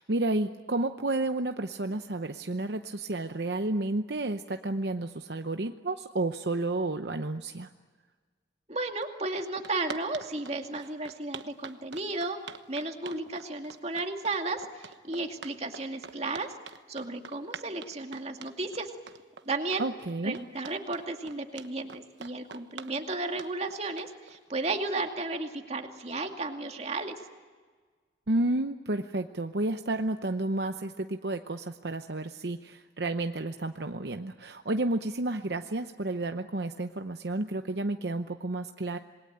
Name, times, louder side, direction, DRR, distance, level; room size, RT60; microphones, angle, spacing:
voice 1, 0.0-7.7 19.8-20.4 28.3-39.0, right 2 dB, 65° right, 7 dB, 0.9 m, -31 dB
voice 2, 8.7-12.4 12.7-16.5 16.9-18.9 19.5-19.8 20.2-27.2, right 2 dB, 35° right, 4 dB, 2.3 m, -34 dB
sound 1, 9.0-9.1 9.4-24.9, right 5 dB, 80° right, 1.2 m, -45 dB
27.5 x 21.0 x 9.0 m, 1.5 s
head